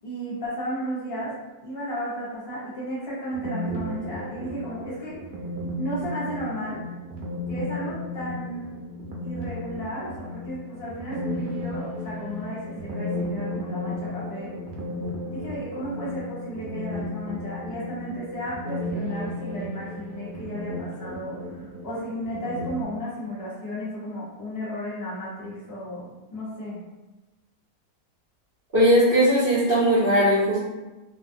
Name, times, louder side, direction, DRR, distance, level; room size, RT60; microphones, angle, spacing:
voice 1, 0.0-1.3 1.6-5.1 5.8-6.8 7.5-8.8 9.2-14.5 15.3-26.8, equal, 45° left, -9 dB, 1.0 m, -34 dB
sound 1, 3.3-22.8, left 1 dB, 75° right, 1.1 m, -34 dB
voice 2, 28.7-30.6, equal, 45° right, -10 dB, 0.8 m, -19 dB
2.7 x 2.4 x 2.6 m, 1.1 s
omnidirectional pair, 1.7 m